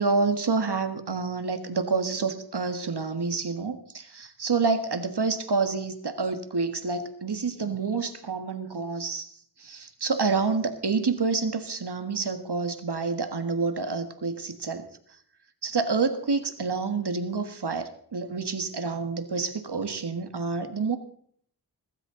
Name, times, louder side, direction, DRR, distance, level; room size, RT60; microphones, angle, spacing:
voice 1, 0.0-9.3 9.6-14.9 15.6-21.0, right 4 dB, 70° right, 8 dB, 1.8 m, -28 dB
21.5 x 12.5 x 4.0 m, 0.62 s
wide cardioid pair, 75°, 41 cm